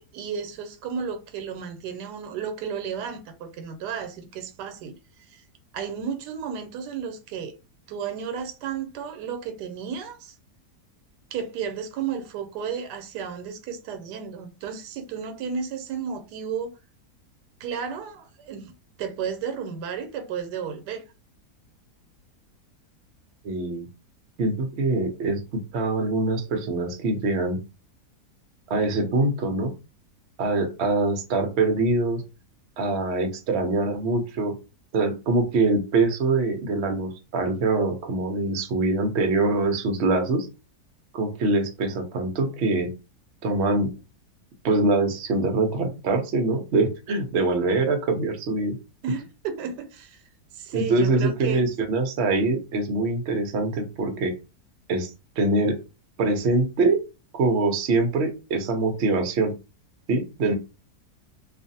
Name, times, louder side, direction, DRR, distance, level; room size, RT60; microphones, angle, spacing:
voice 1, 0.0-5.0 5.3-5.4 5.7-7.6 7.9-10.3 11.3-16.8 17.6-18.7 19.0-21.0 49.0-50.2 50.5-51.7, right 7 dB, 90° right, 1.2 m, -33 dB
voice 2, 23.4-23.9 24.4-27.6 28.7-29.7 30.4-32.2 32.8-34.5 34.9-40.5 41.1-42.9 43.4-43.9 44.6-48.8 50.7-54.3 54.9-55.1 55.4-55.8 56.2-57.0 57.3-59.5 60.1-60.6, right 3 dB, 60° right, 0.7 m, -24 dB
2.5 x 2.4 x 2.7 m
omnidirectional pair, 1.7 m